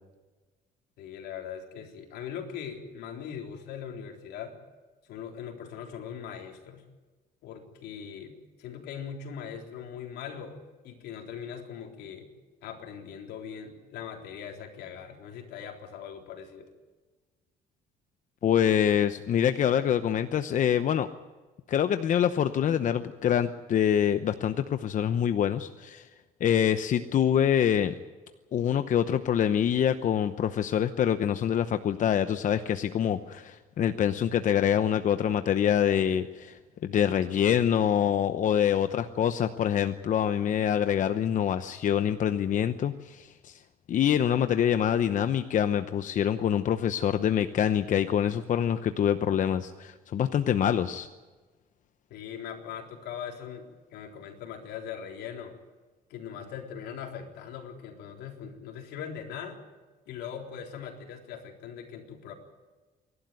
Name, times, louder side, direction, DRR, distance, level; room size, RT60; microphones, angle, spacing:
voice 1, 1.0-4.5 5.1-6.8 7.4-8.3 8.6-12.3 12.6-16.7 52.1-55.6 56.1-59.6 60.1-62.3, left 8 dB, 80° left, 2 dB, 3.8 m, -40 dB
voice 2, 18.4-21.1 21.7-26.1 26.4-27.9 28.5-43.6 43.9-51.1, left 9 dB, 50° left, 10 dB, 0.9 m, -25 dB
27.0 x 12.0 x 9.4 m, 1.3 s
cardioid pair, 110°, 17 cm